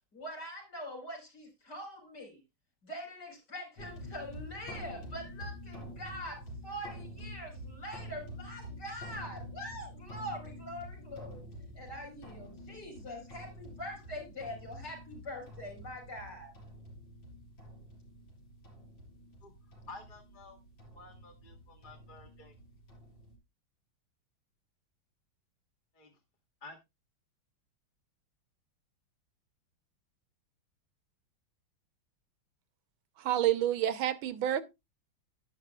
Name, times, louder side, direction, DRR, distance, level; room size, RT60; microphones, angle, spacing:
voice 1, 0.1-2.4 2.8-11.5 11.8-16.5, equal, 50° left, 5.1 m, -43 dB
sound 1, 3.8-23.4, equal, 70° left, 5.8 m, -48 dB
voice 2, 19.9-20.6 20.9-22.5 25.9-26.1 26.6-26.8, left 3 dB, 30° left, 1.2 m, -51 dB
voice 3, 33.2-34.6, right 11 dB, 80° right, 1.6 m, -28 dB
11.5 x 10.5 x 2.3 m
omnidirectional pair, 2.2 m